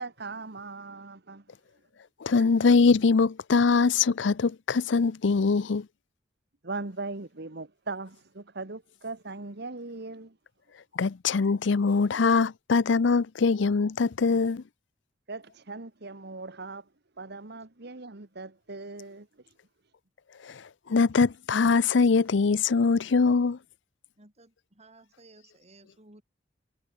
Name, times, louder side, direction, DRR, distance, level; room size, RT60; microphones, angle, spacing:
voice 1, 0.0-1.5 2.4-2.5 6.6-10.4 15.3-16.9 17.2-19.5, right 3 dB, 60° right, 1.7 m, -39 dB
voice 2, 2.2-5.9 11.0-14.6 20.4-23.6, left 4 dB, 65° left, 0.5 m, -23 dB
voice 3, 24.2-26.2, right 2 dB, 35° right, 4.9 m, -56 dB
head